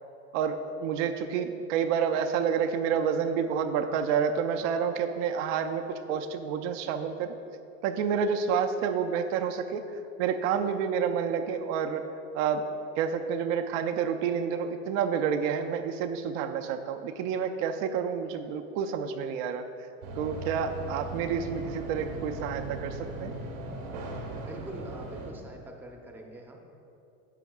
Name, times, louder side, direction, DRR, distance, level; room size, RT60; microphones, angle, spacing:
voice 1, 0.3-7.3 7.8-9.8 10.2-12.0 12.3-19.6 20.2-23.3, right 7 dB, 65° right, 7 dB, 0.6 m, -29 dB
sound 1, 20.0-25.3, right 2 dB, 85° right, 1.4 m, -38 dB
voice 2, 24.5-26.6, right 1 dB, 5° right, 2 dB, 0.7 m, -44 dB
11.5 x 7.0 x 2.3 m, 2.8 s
supercardioid pair, 115°, 41 cm